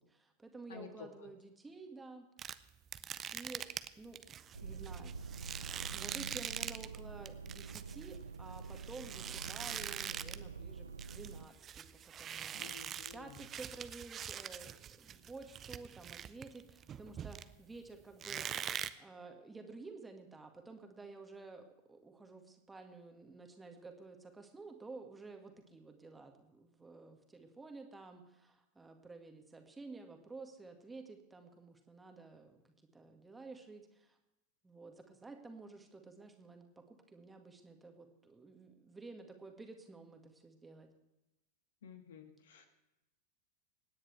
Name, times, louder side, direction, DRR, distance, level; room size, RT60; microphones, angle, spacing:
voice 1, 0.0-2.3 3.3-3.7 4.0-5.5 5.9-12.7 13.1-18.5 19.0-34.2 34.6-40.9, right 3 dB, 10° right, 4 dB, 1.8 m, -52 dB
voice 2, 0.7-1.3 12.5-13.4 41.8-42.7, left 6 dB, 60° left, 6 dB, 1.7 m, -52 dB
sound 1, 2.4-7.0 7.3-10.5 10.8-17.8 18.2-18.9, right 9 dB, 25° right, 0.6 m, -43 dB
sound 2, 4.5-11.5, right 5 dB, 75° right, 0.4 m, -47 dB
25.5 x 10.0 x 3.3 m, 0.96 s
figure-of-eight pair, 90°, 0 cm